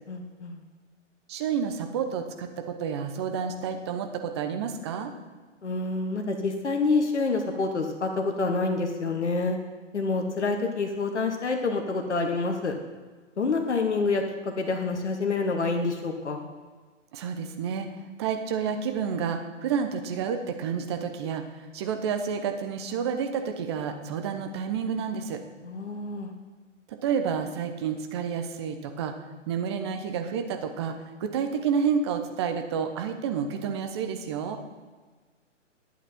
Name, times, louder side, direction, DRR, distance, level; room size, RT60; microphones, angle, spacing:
voice 1, 0.1-0.6 5.6-9.6 9.9-12.7 13.4-16.4 25.6-26.3, left 3 dB, 65° left, 4 dB, 1.3 m, -27 dB
voice 2, 1.3-5.1 17.1-25.4 26.9-29.1 29.5-30.9 31.2-34.6, right 6 dB, 20° right, 6 dB, 0.7 m, -30 dB
11.5 x 8.6 x 4.4 m, 1.4 s
figure-of-eight pair, 125°, 37 cm